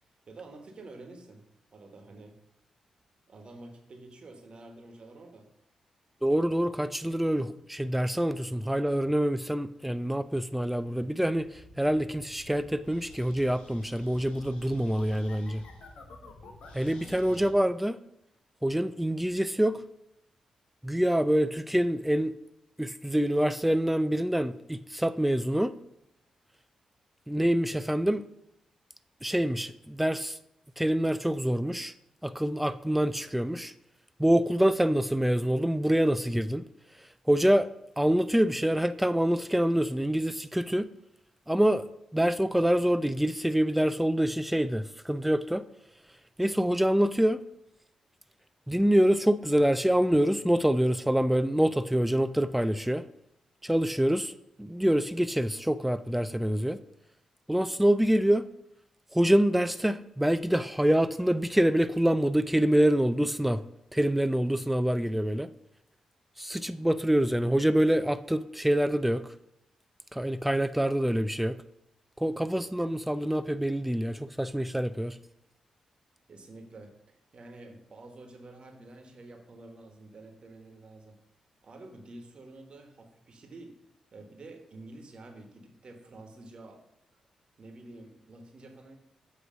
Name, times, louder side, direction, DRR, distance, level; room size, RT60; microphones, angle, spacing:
voice 1, 0.3-2.4 3.3-5.5 16.7-17.6 76.3-81.2 81.6-83.8 84.1-86.8 87.6-89.0, right 2 dB, 55° right, 4 dB, 1.3 m, -49 dB
voice 2, 6.2-15.6 16.7-18.0 18.6-19.8 20.8-22.3 22.8-25.7 27.3-28.2 29.2-30.4 30.8-31.9 32.2-33.7 34.2-36.6 37.3-37.7 38.0-40.9 41.5-41.9 42.1-45.6 46.4-47.4 48.7-53.0 53.6-54.3 54.6-56.8 57.5-58.5 59.1-63.6 63.9-65.5 66.4-69.2 70.1-71.6 72.2-75.2, right 1 dB, 5° right, 13 dB, 0.5 m, -26 dB
sound 1, 11.4-17.5, left 2 dB, 70° left, 1.1 m, -51 dB
7.7 x 3.2 x 6.3 m, 0.80 s
supercardioid pair, 40°, 2 cm